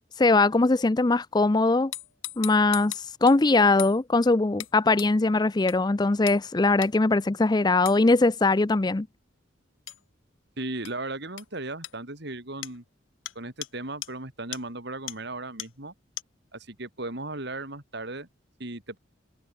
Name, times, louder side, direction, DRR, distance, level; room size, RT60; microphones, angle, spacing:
voice 1, 0.2-1.9 2.4-9.1, left 3 dB, 20° left, 0.5 m, -21 dB
sound 1, 1.9-3.4 3.8-4.0 4.6-4.7 5.0-5.1 5.7-5.8 6.3-6.4 6.8-6.9 7.9-8.0 9.9-10.0 10.9-11.0 11.4-11.5 11.8-11.9 12.6-12.8 13.3-13.4 13.6-13.7 14.0-14.1 14.5-14.6 15.1-15.2 15.6-15.7 16.2-16.3, left 15 dB, 75° left, 1.2 m, -37 dB
voice 2, 10.6-12.8 13.4-15.9 16.5-18.3 18.6-19.0, right 2 dB, 55° right, 3.6 m, -36 dB
head